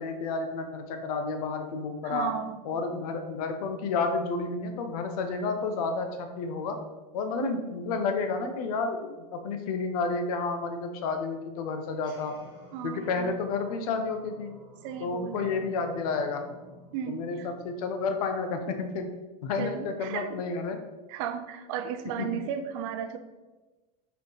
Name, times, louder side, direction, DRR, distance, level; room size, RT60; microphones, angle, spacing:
voice 1, 0.0-2.3 2.6-6.8 7.1-12.3 12.8-14.5 15.0-16.4 17.1-19.0 19.4-20.8 22.2-22.3, left 4 dB, 65° left, 6 dB, 0.9 m, -31 dB
voice 2, 2.0-2.6 7.4-7.6 12.7-13.3 14.8-15.7 16.9-17.5 19.6-20.4 21.1-23.2, right 9 dB, 50° right, 9 dB, 0.6 m, -35 dB
sound 1, 11.9-18.6, left 1 dB, 25° left, 1.5 m, -52 dB
4.9 x 4.5 x 4.8 m, 1.2 s
supercardioid pair, 165°, 21 cm